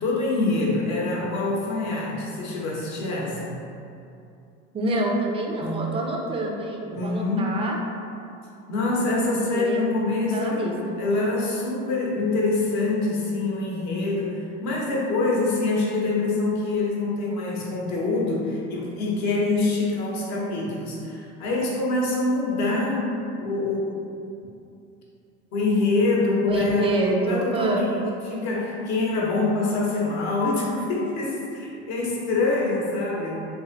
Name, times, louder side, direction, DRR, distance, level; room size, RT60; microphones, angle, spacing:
voice 1, 0.0-3.6 5.6-5.9 6.9-7.6 8.7-10.7 11.0-24.0 25.5-27.0 27.3-27.8 28.2-33.4, left 2 dB, 55° left, -3 dB, 0.9 m, -25 dB
voice 2, 4.7-7.8 9.5-9.8 10.1-11.0 26.5-27.9, right 2 dB, 20° right, 0 dB, 0.3 m, -27 dB
3.0 x 2.5 x 3.8 m, 2.6 s
supercardioid pair, 125°, 33 cm